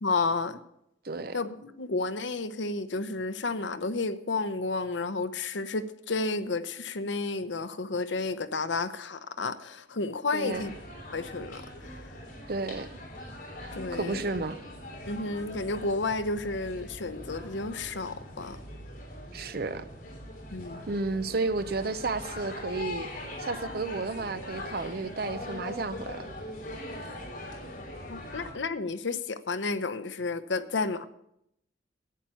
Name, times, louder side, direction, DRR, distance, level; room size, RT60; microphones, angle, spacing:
voice 1, 0.0-0.6 1.3-10.7 11.1-11.6 13.7-14.2 15.1-18.6 20.5-20.8 28.1-31.1, left 3 dB, 85° left, 0.8 m, -31 dB
voice 2, 1.0-1.4 10.3-10.7 12.5-13.0 13.9-14.6 19.3-19.8 20.9-23.1 23.4-26.2, right 3 dB, 55° right, 0.7 m, -32 dB
sound 1, 10.5-28.5, left 1 dB, 50° left, 3.4 m, -41 dB
11.0 x 8.8 x 7.0 m
head